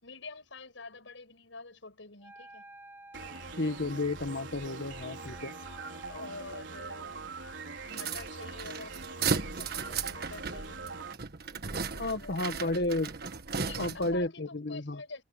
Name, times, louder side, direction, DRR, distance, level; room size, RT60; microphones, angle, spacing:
voice 1, 0.0-2.7 6.1-7.3 7.8-11.0 11.9-12.4 13.6-15.2, left 3 dB, 80° left, 5.6 m, -47 dB
Wind instrument woodwind instrument, 2.2-6.7, right 1 dB, 10° right, 6.6 m, -53 dB
sound 1, 3.1-11.1, right 3 dB, 70° right, 5.2 m, -43 dB
voice 2, 3.5-5.5 12.0-13.1 13.8-15.0, left 2 dB, 60° left, 1.6 m, -32 dB
sound 2, 7.9-14.2, right 5 dB, 55° right, 1.6 m, -35 dB
head